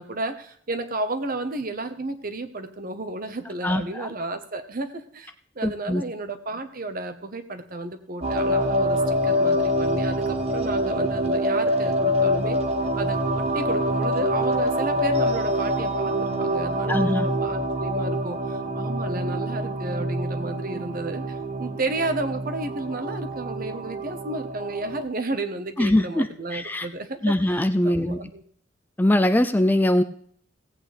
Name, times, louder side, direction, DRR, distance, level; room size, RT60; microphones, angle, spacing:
voice 1, 0.0-12.6 13.0-28.4, right 2 dB, 50° right, 8 dB, 1.1 m, -32 dB
voice 2, 3.6-4.1 5.6-6.0 16.9-17.3 25.8-26.3 26.5-26.9 27.2-28.2 29.0-30.0, left 1 dB, 10° left, 10 dB, 0.4 m, -22 dB
sound 1, 8.2-25.0, equal, 35° right, 0.9 m, -25 dB
17.0 x 8.5 x 3.4 m, 0.62 s
head